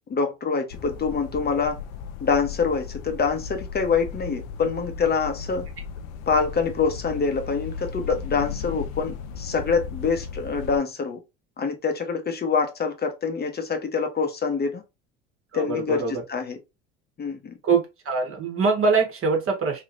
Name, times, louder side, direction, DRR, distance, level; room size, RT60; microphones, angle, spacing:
voice 1, 0.1-1.8 2.2-5.6 6.3-11.2 11.6-14.8 15.5-16.6 17.2-17.6, left 5 dB, 30° left, 0.9 m, -25 dB
sound 1, 0.7-10.8, left 6 dB, 65° left, 0.6 m, -36 dB
voice 2, 15.5-16.2 17.6-19.8, right 4 dB, 40° right, 1.5 m, -23 dB
3.2 x 2.9 x 2.6 m
hypercardioid pair, 75°, 35 cm